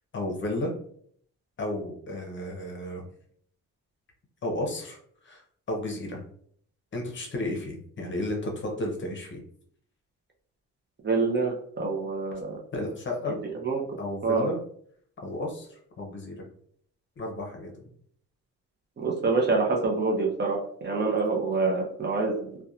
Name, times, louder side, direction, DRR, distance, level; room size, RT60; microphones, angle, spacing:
voice 1, 0.1-0.7 1.6-3.1 4.4-5.0 5.2-5.4 5.7-6.2 6.9-9.4 12.7-13.4 14.0-14.6 15.2-16.4 17.2-17.9, left 1 dB, 40° left, 0 dB, 0.7 m, -33 dB
voice 2, 11.0-12.6 13.6-13.8 14.2-14.5 19.0-22.5, right 3 dB, 35° right, -1 dB, 0.6 m, -26 dB
2.7 x 2.2 x 2.4 m, 0.63 s
cardioid pair, 90°, 30 cm